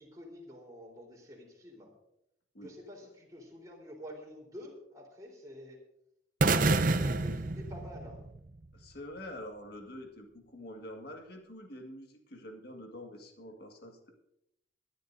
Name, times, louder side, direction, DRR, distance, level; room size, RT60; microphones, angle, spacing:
voice 1, 0.0-1.9 2.6-5.8 6.6-8.2, left 1 dB, 20° right, -1 dB, 3.8 m, -48 dB
sound 1, 6.4-8.5, right 3 dB, 45° right, 0.6 m, -28 dB
voice 2, 8.7-14.2, left 1 dB, 55° left, 2 dB, 1.8 m, -46 dB
23.5 x 11.5 x 2.6 m, 0.82 s
head